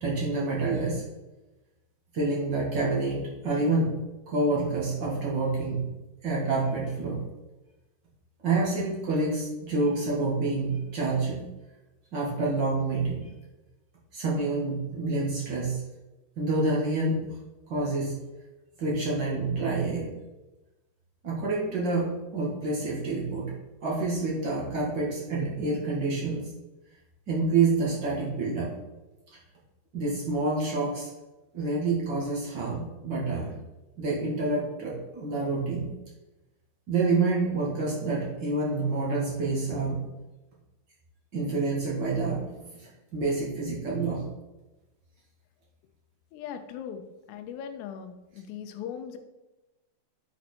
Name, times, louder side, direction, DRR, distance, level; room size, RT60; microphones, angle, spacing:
voice 1, 0.0-1.0 2.1-3.9 4.3-5.9 6.2-7.2 8.4-11.4 12.1-13.3 14.1-15.8 16.4-17.2 17.7-18.1 18.8-20.1 21.2-23.5 23.8-26.4 27.3-28.7 29.9-31.1 31.5-33.5 34.0-35.9 36.9-40.0 41.3-44.3, right 3 dB, 50° right, -5 dB, 1.3 m, -28 dB
voice 2, 46.3-47.0 47.3-49.2, left 8 dB, 90° left, 7 dB, 2.9 m, -39 dB
10.0 x 4.3 x 4.3 m, 1.1 s
omnidirectional pair, 4.7 m